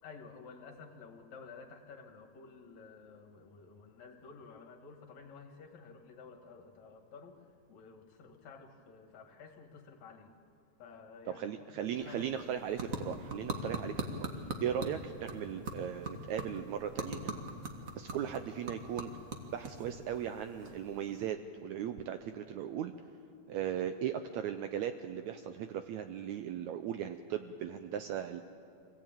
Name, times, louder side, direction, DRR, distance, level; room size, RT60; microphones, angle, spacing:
voice 1, 0.0-10.3 10.8-12.4, left 5 dB, 60° left, 3 dB, 2.9 m, -52 dB
voice 2, 11.3-14.3 14.6-17.3 17.9-19.1 19.5-22.9 23.5-28.4, right 9 dB, 80° right, 8 dB, 1.7 m, -37 dB
sound 1, 11.8-21.2, right 2 dB, 55° right, 0.9 m, -42 dB
24.5 x 16.5 x 8.9 m, 2.5 s
omnidirectional pair, 3.9 m